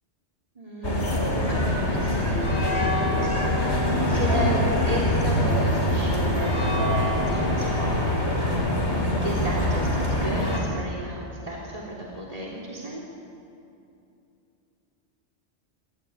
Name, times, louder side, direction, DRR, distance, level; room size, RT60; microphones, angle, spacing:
voice 1, 0.6-2.4 2.7-3.3 4.1-13.0, right 1 dB, 30° right, -4 dB, 3.6 m, -34 dB
sound 1, 0.8-10.6, left 1 dB, 75° left, 4.6 m, -24 dB
25.0 x 17.0 x 9.6 m, 2.6 s
omnidirectional pair, 1.2 m